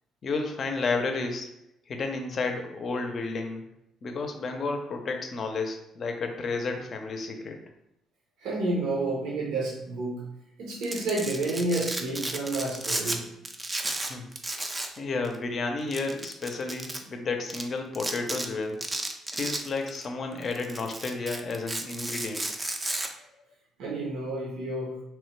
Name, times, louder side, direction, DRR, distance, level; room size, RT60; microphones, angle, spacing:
voice 1, 0.2-1.5 1.9-3.7 4.0-7.6 13.8-14.7 15.0-18.8 19.3-22.5, left 3 dB, 50° left, 4 dB, 0.5 m, -32 dB
voice 2, 8.4-10.2 10.6-13.3 23.8-25.0, right 2 dB, 85° right, -3 dB, 0.7 m, -30 dB
Domestic sounds home sounds, 10.7-13.2 13.4-15.0 15.2-15.4 15.9-17.0 17.5-17.6 17.9-18.5 18.8-20.0 20.4-23.1, right 2 dB, 20° right, 0.4 m, -33 dB
3.0 x 2.1 x 3.1 m, 0.83 s
cardioid pair, 90°, 0 cm